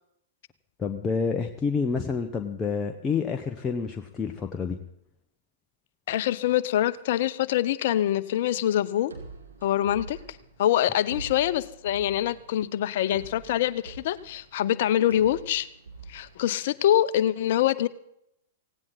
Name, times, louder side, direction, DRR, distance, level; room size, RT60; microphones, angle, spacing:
voice 1, 0.8-4.8, left 5 dB, 20° left, 3 dB, 1.3 m, -28 dB
voice 2, 6.1-9.1 9.6-10.2 10.6-15.7 16.1-17.9, left 12 dB, 55° left, 16 dB, 0.9 m, -25 dB
sound 1, 9.1-17.0, right 4 dB, 80° right, 3.7 m, -45 dB
18.0 x 17.0 x 4.2 m, 0.77 s
figure-of-eight pair, 105°, 0 cm